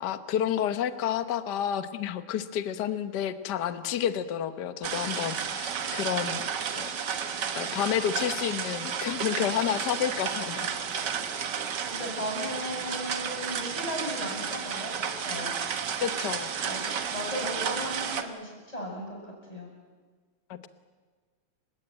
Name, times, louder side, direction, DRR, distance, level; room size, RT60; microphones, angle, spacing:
voice 1, 0.0-6.4 6.8-6.9 7.5-10.7 16.0-16.5 20.5-20.7, left 9 dB, 75° left, 11 dB, 0.9 m, -30 dB
sound 1, 4.8-18.2, right 7 dB, 55° right, 1.3 m, -32 dB
voice 2, 11.8-15.5 16.6-19.2 19.5-19.7, equal, 10° left, -2 dB, 7.3 m, -36 dB
29.0 x 17.0 x 8.9 m, 1.5 s
omnidirectional pair, 3.4 m